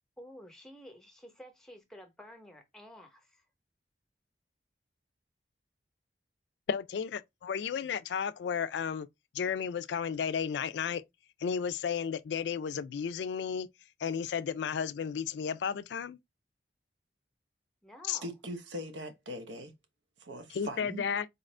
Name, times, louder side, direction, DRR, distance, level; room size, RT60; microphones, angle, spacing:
voice 1, 0.2-3.4 17.8-18.3, equal, 5° left, 0.7 m, -51 dB
voice 2, 6.7-9.1 9.3-11.0 11.4-13.7 14.0-16.2 18.1-18.2 20.5-21.3, left 7 dB, 75° left, 0.3 m, -33 dB
voice 3, 18.2-19.7 20.2-21.1, equal, 90° right, 0.8 m, -41 dB
4.1 x 2.5 x 3.1 m
head